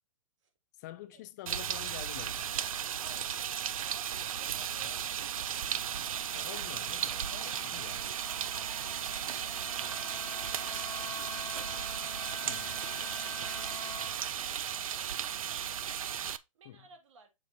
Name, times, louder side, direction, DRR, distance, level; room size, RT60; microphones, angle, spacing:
voice 1, 0.8-2.5 4.8-5.0 6.3-8.1 12.4-12.8 16.7-16.8, left 15 dB, 30° left, 0.4 m, -47 dB
sound 1, 1.5-16.4, right 9 dB, 80° right, 0.6 m, -35 dB
Wind instrument woodwind instrument, 2.7-14.2, left 5 dB, 15° left, 1.2 m, -48 dB
voice 2, 3.0-5.7 8.3-11.5 12.7-15.6 16.0-17.3, right 4 dB, 60° right, 2.0 m, -59 dB
sound 2, 4.5-14.9 15.3-15.8 16.2-16.3, right 12 dB, 30° right, 0.5 m, -58 dB
7.5 x 3.5 x 4.4 m
hypercardioid pair, 155°, 17 cm